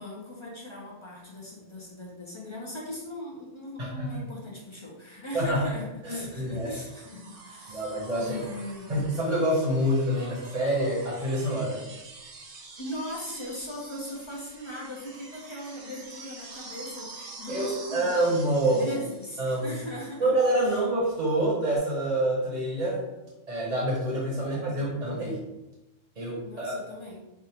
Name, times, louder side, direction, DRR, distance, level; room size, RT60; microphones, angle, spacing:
voice 1, 0.0-8.9 12.8-18.2 18.6-20.3 24.4-24.9 26.4-27.2, left 1 dB, 35° left, -3 dB, 0.5 m, -39 dB
voice 2, 3.8-4.1 5.3-5.6 6.0-6.7 7.7-8.4 8.9-11.8 17.5-18.8 19.4-19.8 20.2-23.0 23.5-25.4 26.2-26.7, right 1 dB, 35° right, -4 dB, 0.9 m, -27 dB
sound 1, 6.3-20.3 21.8-21.9, right 3 dB, 65° right, 1.0 m, -47 dB
3.5 x 2.4 x 4.3 m, 1.0 s
omnidirectional pair, 1.3 m